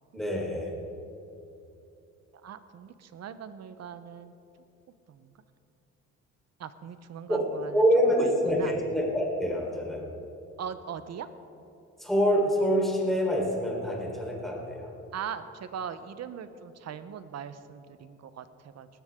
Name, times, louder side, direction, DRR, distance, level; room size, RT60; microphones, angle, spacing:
voice 1, 0.1-0.7 7.3-7.4 7.7-10.0 12.0-14.9, equal, ahead, -2 dB, 4.1 m, -26 dB
voice 2, 2.4-4.3 5.1-5.3 6.6-8.8 10.6-11.3 15.1-18.9, right 8 dB, 60° right, 12 dB, 0.9 m, -40 dB
19.0 x 14.5 x 3.7 m, 2.8 s
cardioid pair, 90°, 30 cm